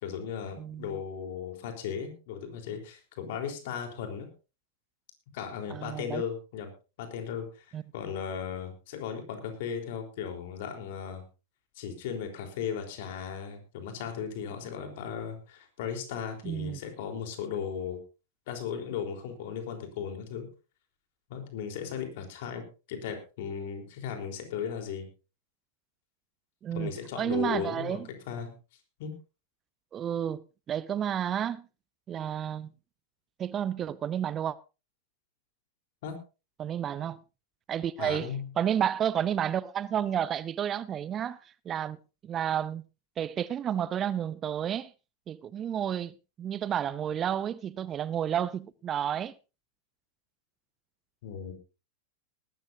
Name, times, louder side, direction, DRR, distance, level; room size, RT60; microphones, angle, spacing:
voice 1, 0.0-4.3 5.3-6.7 7.0-11.2 11.8-18.0 18.5-20.5 21.3-25.1 26.7-28.0 28.3-28.5 29.0-29.1 36.0-36.2 38.0-38.5 51.2-51.5, left 7 dB, 60° left, 3.8 m, -36 dB
voice 2, 0.6-1.0 5.7-6.2 7.7-7.8 16.4-16.8 26.6-28.1 29.9-31.7 32.1-32.7 33.4-34.6 36.6-37.2 37.7-38.3 38.6-42.0 42.2-42.8 43.2-44.9 45.3-49.3, right 9 dB, 30° right, 0.6 m, -31 dB
20.0 x 13.0 x 2.7 m
hypercardioid pair, 95°, 0 cm